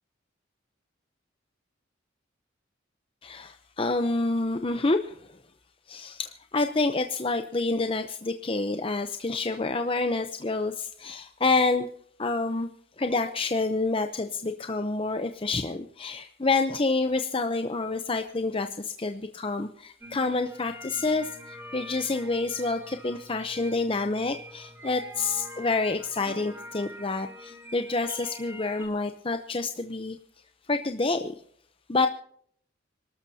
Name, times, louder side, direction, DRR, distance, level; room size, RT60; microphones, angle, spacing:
voice 1, 3.2-5.3 5.9-11.9 12.2-12.7 13.0-30.2 30.7-31.3 31.9-32.1, left 3 dB, 30° left, 7 dB, 0.7 m, -28 dB
sound 1, 20.0-28.9, equal, 15° right, 2.2 m, -45 dB
26.0 x 12.5 x 2.8 m, 0.64 s
head